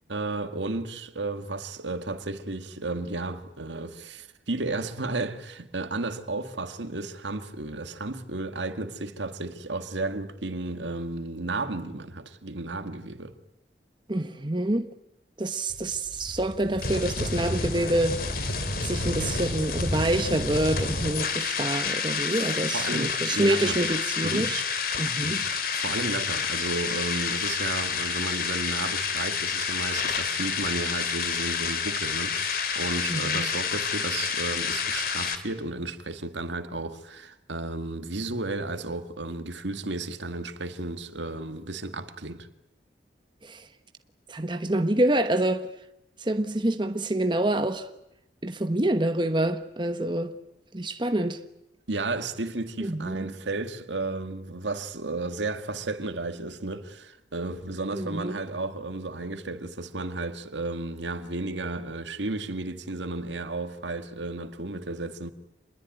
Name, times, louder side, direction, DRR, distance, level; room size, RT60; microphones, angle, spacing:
voice 1, 0.1-13.3 22.4-23.8 24.2-24.5 25.2-42.5 51.9-65.3, right 2 dB, 85° right, 2.0 m, -33 dB
voice 2, 14.1-14.9 15.4-18.2 18.8-24.6 25.0-25.4 33.1-33.5 43.4-43.7 44.3-45.7 46.2-47.9 48.4-50.3 50.7-51.4 52.8-53.3 57.9-58.4, right 1 dB, 25° right, 1.2 m, -27 dB
sound 1, 15.7-35.4, left 5 dB, 55° left, 2.8 m, -29 dB
27.5 x 21.5 x 9.3 m
head